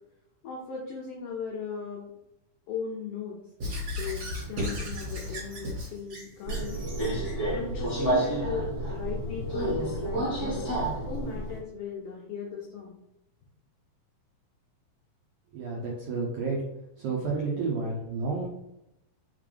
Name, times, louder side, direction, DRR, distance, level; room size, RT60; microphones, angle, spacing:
voice 1, 0.4-2.0 2.7-3.4 4.0-6.8 7.5-10.7 11.1-13.0, left 6 dB, 80° left, -3 dB, 1.3 m, -37 dB
Squeak / Writing, 3.6-7.4, left 1 dB, 45° right, 2.2 m, -35 dB
Subway metro underground, 6.5-11.6, right 1 dB, 30° left, 1.8 m, -30 dB
voice 2, 15.5-16.6 17.0-18.5, right 4 dB, 80° right, -3 dB, 1.3 m, -30 dB
4.2 x 3.7 x 3.3 m, 0.86 s
omnidirectional pair, 3.6 m